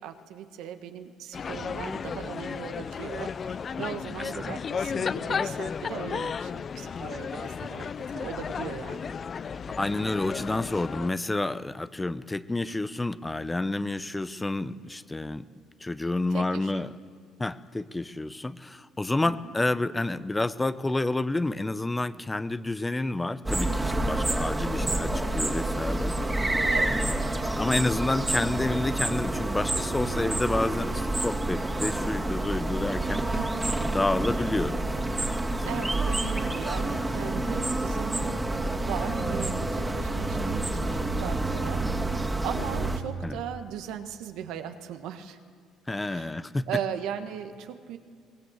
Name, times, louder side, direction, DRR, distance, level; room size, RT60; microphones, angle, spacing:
voice 1, 0.0-9.0 16.3-16.9 19.2-19.5 26.7-27.1 33.4-33.6 35.6-45.4 46.1-46.4 46.7-48.0, right 9 dB, 75° right, 8 dB, 1.4 m, -38 dB
sound 1, 1.3-11.1, left 6 dB, 40° left, 0.5 m, -33 dB
voice 2, 4.2-4.6 9.7-15.5 15.8-16.9 17.4-26.2 26.8-33.3 33.8-34.8 35.6-35.9 43.2-43.4 45.9-46.6, left 2 dB, 15° left, 13 dB, 0.8 m, -29 dB
sound 2, 23.5-43.0, right 2 dB, 15° right, 2.4 m, -28 dB
23.0 x 19.0 x 8.1 m, 2.1 s
supercardioid pair, 80°, 0 cm